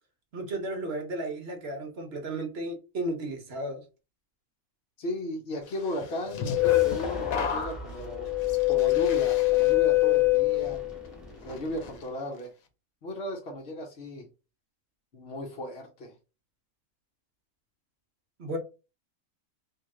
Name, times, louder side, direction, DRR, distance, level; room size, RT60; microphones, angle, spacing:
voice 1, 0.3-3.8 18.4-18.6, right 1 dB, 50° right, 1.0 m, -34 dB
voice 2, 5.0-8.3 8.7-10.8 11.4-12.5 13.0-14.3 15.1-16.1, left 1 dB, 50° left, 0.9 m, -36 dB
sound 1, 6.0-11.0 11.5-11.9, left 17 dB, 75° left, 1.1 m, -25 dB
sound 2, 6.5-12.1, equal, ahead, 1.1 m, -44 dB
3.1 x 2.7 x 3.6 m
omnidirectional pair, 1.5 m